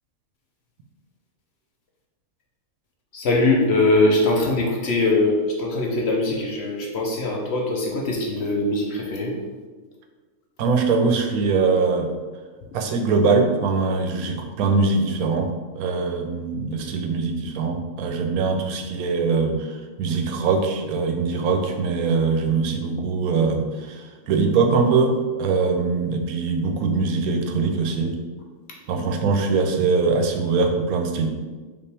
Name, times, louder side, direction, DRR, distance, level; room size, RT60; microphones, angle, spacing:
voice 1, 3.1-9.3, left 2 dB, 60° left, -1 dB, 0.8 m, -21 dB
voice 2, 10.6-12.1 12.7-28.1 28.9-31.3, right 4 dB, 85° right, 4 dB, 1.1 m, -22 dB
5.1 x 2.6 x 3.3 m, 1.3 s
omnidirectional pair, 1.5 m